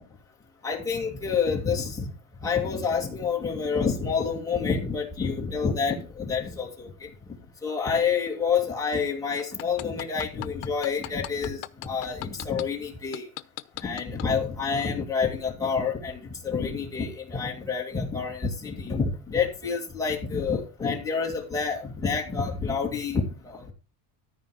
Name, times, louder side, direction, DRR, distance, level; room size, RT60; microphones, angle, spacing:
voice 1, 0.6-2.0 2.4-7.1 7.6-13.3 13.8-16.2 16.4-23.7, left 5 dB, 5° left, -2 dB, 2.3 m, -28 dB
sound 1, 9.4-12.6 13.1-14.3 14.8-14.9, left 21 dB, 90° left, 0.9 m, -36 dB
13.5 x 5.1 x 5.1 m, 0.33 s
cardioid pair, 175°, 45 cm